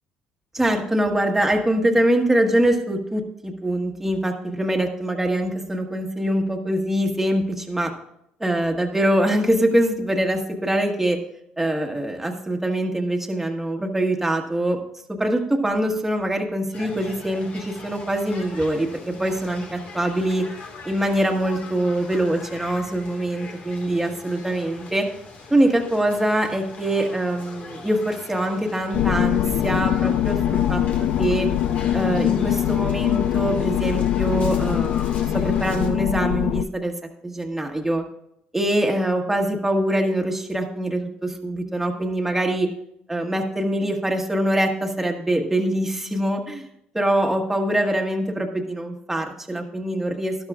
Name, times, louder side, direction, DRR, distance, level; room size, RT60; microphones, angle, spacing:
voice 1, 0.5-7.9 8.4-11.2 11.6-14.8 15.1-20.5 20.8-25.1 25.5-31.5 31.9-36.9 37.2-38.0 38.5-42.7 43.1-46.7 46.9-50.4, right 1 dB, 10° right, 1 dB, 1.5 m, -23 dB
sound 1, 16.7-35.9, left 3 dB, 50° left, 1.9 m, -41 dB
sound 2, 28.9-36.6, left 11 dB, 65° left, 0.4 m, -22 dB
12.5 x 11.5 x 2.5 m, 0.75 s
supercardioid pair, 85°, 3 cm